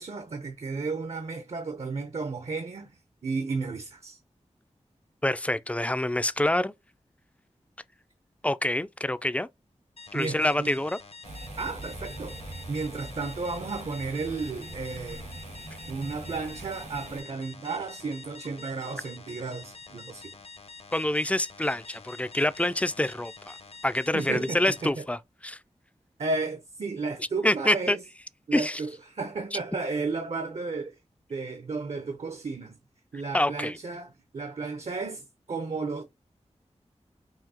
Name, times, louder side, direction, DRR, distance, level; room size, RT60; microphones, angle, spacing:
voice 1, 0.0-2.9 3.2-4.2 10.1-10.7 11.6-15.3 15.9-20.3 24.1-25.1 26.2-28.0 28.5-31.0 31.3-32.8 33.1-36.0, right 4 dB, 60° right, 0.7 m, -33 dB
voice 2, 5.2-6.7 8.4-9.5 10.1-11.0 20.9-23.6 23.8-25.6 27.4-28.0 28.5-28.8 33.3-33.8, left 1 dB, 10° left, 0.3 m, -26 dB
sound 1, 10.0-24.9, left 4 dB, 55° left, 0.7 m, -47 dB
sound 2, 11.2-17.2, right 2 dB, 90° right, 2.9 m, -42 dB
5.7 x 2.8 x 2.8 m
wide cardioid pair, 80°, 12 cm